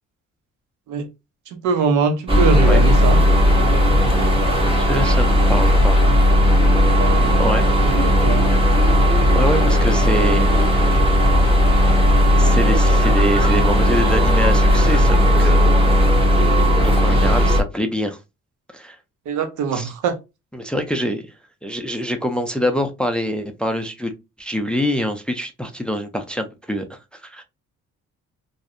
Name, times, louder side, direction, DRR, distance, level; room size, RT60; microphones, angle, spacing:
voice 1, 1.5-3.2 7.8-8.5 19.3-20.2, right 5 dB, 75° right, 0.6 m, -22 dB
sound 1, 2.3-17.6, equal, 20° right, 0.9 m, -15 dB
voice 2, 4.8-6.0 7.4-7.7 9.3-10.9 11.9-12.0 12.3-15.6 16.8-18.2 18.7-19.0 19.7-19.9 20.5-21.2 21.6-24.1 24.4-27.4, equal, 5° left, 0.3 m, -25 dB
2.6 x 2.0 x 2.4 m
cardioid pair, 90°, 30 cm